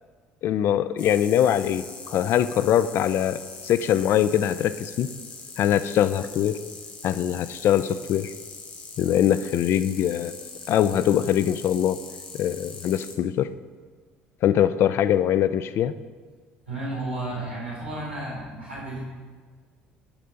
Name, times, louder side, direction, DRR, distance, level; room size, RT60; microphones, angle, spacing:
voice 1, 0.4-5.1 5.6-6.6 7.0-8.3 9.0-10.3 10.7-12.0 12.4-13.5 14.4-15.9, left 10 dB, 45° left, 14 dB, 0.4 m, -22 dB
sound 1, 1.0-13.2, left 4 dB, 75° left, 0.9 m, -42 dB
voice 2, 16.7-19.0, right 2 dB, 85° right, -6 dB, 2.3 m, -32 dB
12.0 x 4.3 x 5.1 m, 1.5 s
figure-of-eight pair, 55°, 6 cm